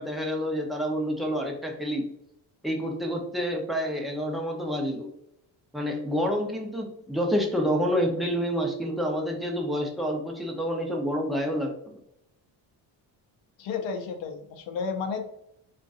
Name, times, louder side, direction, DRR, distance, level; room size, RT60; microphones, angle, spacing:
voice 1, 0.0-2.1 2.6-5.1 5.7-11.7, equal, ahead, 0 dB, 0.8 m, -28 dB
voice 2, 13.6-15.2, left 5 dB, 80° left, 5 dB, 0.7 m, -32 dB
3.7 x 2.5 x 2.5 m, 0.75 s
cardioid pair, 100°, 45 cm